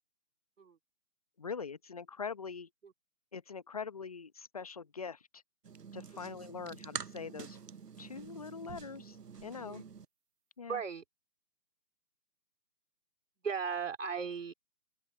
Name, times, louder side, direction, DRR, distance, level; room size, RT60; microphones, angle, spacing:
voice 1, 1.4-2.7 3.3-5.4 5.9-7.6 8.0-9.2 9.4-9.8 10.6-10.8, left 5 dB, 25° left, 0.9 m, -43 dB
sound 1, 5.6-10.1, right 6 dB, 85° right, 1.0 m, -47 dB
voice 2, 10.6-11.0 13.4-14.5, right 6 dB, 50° right, 3.3 m, -37 dB
open air
figure-of-eight pair, 160°, 46 cm